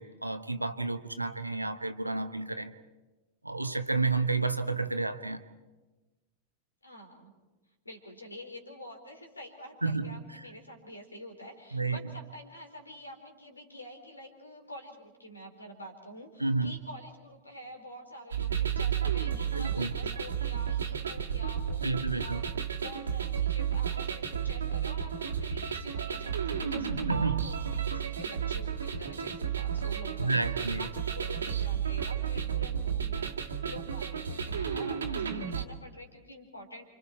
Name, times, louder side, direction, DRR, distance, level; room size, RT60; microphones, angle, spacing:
voice 1, 0.0-2.7 3.4-5.4 9.8-10.4 11.7-12.0 16.4-16.7 19.5-19.9 21.8-22.4 27.1-27.5 27.9-28.0 30.2-30.9, right 3 dB, 85° right, 10 dB, 1.1 m, -31 dB
voice 2, 6.8-7.3 7.8-36.8, left 1 dB, 80° left, 4 dB, 4.2 m, -47 dB
sound 1, 18.3-35.6, right 8 dB, 70° right, 1.8 m, -32 dB
29.5 x 27.0 x 4.6 m, 1.2 s
figure-of-eight pair, 90°, 0 cm